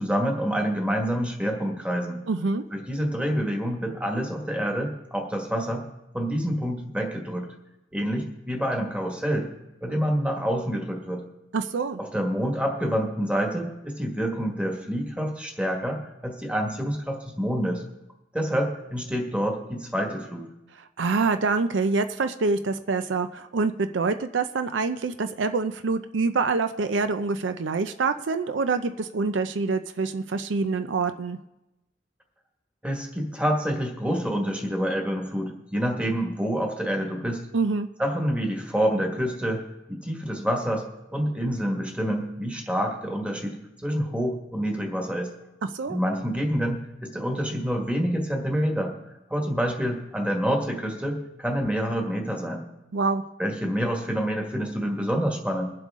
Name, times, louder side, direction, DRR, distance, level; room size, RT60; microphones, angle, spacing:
voice 1, 0.0-2.2 2.7-5.9 6.1-7.5 7.9-9.5 9.8-11.3 12.0-17.8 18.3-20.5 32.8-37.4 38.0-45.3 45.9-48.9 49.3-52.6 53.4-55.7, equal, 5° right, 1 dB, 1.6 m, -27 dB
voice 2, 2.3-2.6 11.5-12.0 21.0-31.4 37.5-37.9 45.6-46.0 52.9-53.2, right 4 dB, 70° right, 9 dB, 0.5 m, -26 dB
23.0 x 7.7 x 3.7 m, 0.92 s
head